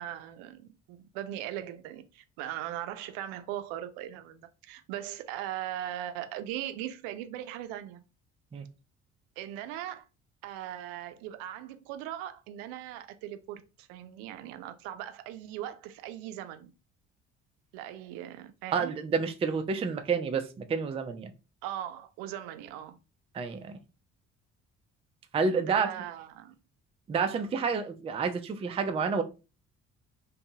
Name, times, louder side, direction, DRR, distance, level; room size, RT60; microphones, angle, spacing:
voice 1, 0.0-8.0 9.4-10.0 10.4-16.7 17.7-18.9 21.6-23.0 25.5-26.5, right 12 dB, 70° right, 0.5 m, -39 dB
voice 2, 18.7-21.3 23.3-23.8 25.3-25.9 27.1-29.2, right 5 dB, 15° right, 0.4 m, -29 dB
2.6 x 2.3 x 2.7 m
hypercardioid pair, 50°, 36 cm